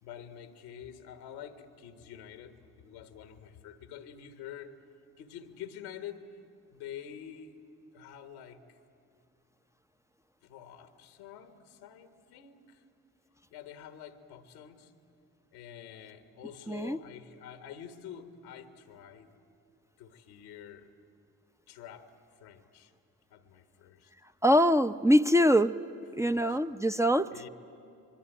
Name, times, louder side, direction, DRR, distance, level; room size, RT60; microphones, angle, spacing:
voice 1, 0.0-4.7 5.2-6.2 6.7-7.6 7.9-8.6 10.4-12.8 13.5-14.9 15.5-19.3 20.0-20.9 21.7-22.1 22.4-22.9 23.3-24.1 26.2-26.6 27.3-27.5, left 9 dB, 85° left, 8 dB, 1.5 m, -47 dB
voice 2, 16.7-17.0 24.4-25.7 26.2-27.3, equal, 5° right, 7 dB, 0.7 m, -23 dB
26.0 x 22.0 x 9.1 m, 2.5 s
hypercardioid pair, 45°, 42 cm